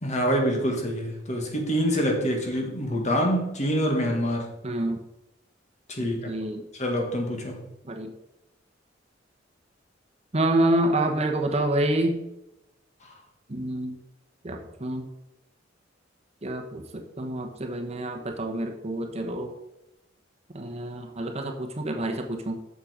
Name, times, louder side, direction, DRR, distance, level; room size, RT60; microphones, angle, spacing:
voice 1, 0.0-4.5 5.9-6.3 6.7-7.7 13.0-13.1, equal, 40° left, 2 dB, 1.7 m, -26 dB
voice 2, 4.6-5.0 6.3-6.6 7.8-8.1 10.3-12.2 13.5-14.0 14.4-15.0 16.4-19.5 20.5-22.6, right 1 dB, 35° right, 3 dB, 1.0 m, -27 dB
7.4 x 6.7 x 5.1 m, 0.90 s
head